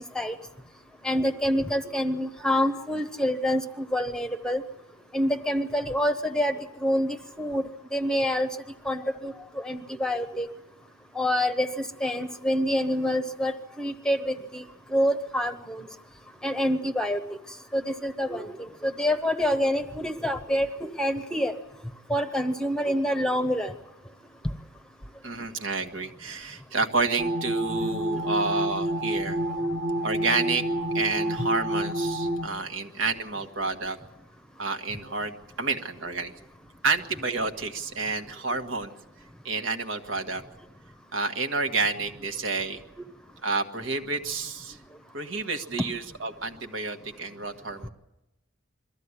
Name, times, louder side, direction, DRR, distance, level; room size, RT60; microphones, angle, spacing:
voice 1, 1.0-4.6 5.1-8.5 8.8-10.5 11.1-14.6 14.9-15.9 16.4-17.2 17.7-21.5 22.1-23.7, equal, 5° left, 8 dB, 1.0 m, -27 dB
voice 2, 25.2-29.4 30.0-30.6 30.9-34.0 34.6-36.3 36.8-38.9 39.4-40.4 41.1-42.8 43.4-44.8 45.1-47.9, right 3 dB, 65° right, 6 dB, 1.5 m, -29 dB
sound 1, 27.2-32.5, right 1 dB, 35° right, 1.5 m, -28 dB
22.5 x 14.5 x 9.7 m, 0.96 s
head